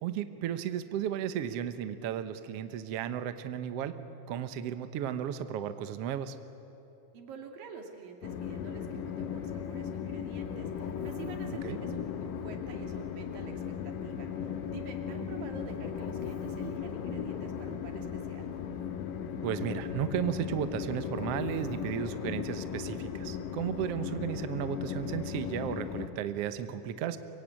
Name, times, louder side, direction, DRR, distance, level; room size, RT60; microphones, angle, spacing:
voice 1, 0.0-4.0 4.3-6.4 11.6-11.8 19.4-27.2, right 9 dB, 70° right, 10 dB, 1.5 m, -34 dB
voice 2, 7.1-18.5, right 5 dB, 85° right, 3 dB, 3.9 m, -47 dB
Train, 8.2-26.1, left 8 dB, 75° left, 2.9 m, -37 dB
25.0 x 23.0 x 8.9 m, 3.0 s
omnidirectional pair, 3.9 m